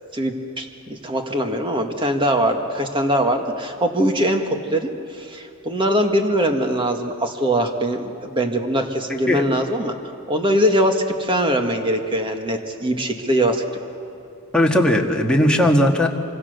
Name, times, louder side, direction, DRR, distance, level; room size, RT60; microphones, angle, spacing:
voice 1, 0.1-10.0 10.3-13.6, right 1 dB, 25° right, 4 dB, 1.8 m, -22 dB
voice 2, 14.5-16.1, left 1 dB, 5° left, 0 dB, 1.7 m, -17 dB
26.5 x 25.0 x 6.8 m, 2.6 s
head